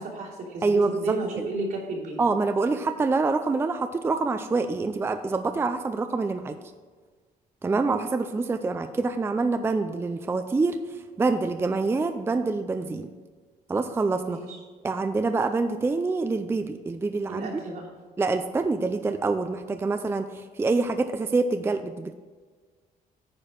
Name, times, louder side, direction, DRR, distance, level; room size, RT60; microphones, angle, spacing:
voice 1, 0.0-2.2 14.3-14.6 17.3-17.9, right 2 dB, 75° right, -5 dB, 3.1 m, -33 dB
voice 2, 0.6-1.5 2.2-6.6 7.6-13.1 13.7-14.4 14.8-17.5 18.2-22.1, right 3 dB, 15° right, 8 dB, 0.4 m, -26 dB
9.6 x 4.5 x 6.4 m, 1.5 s
cardioid pair, 120°, 16 cm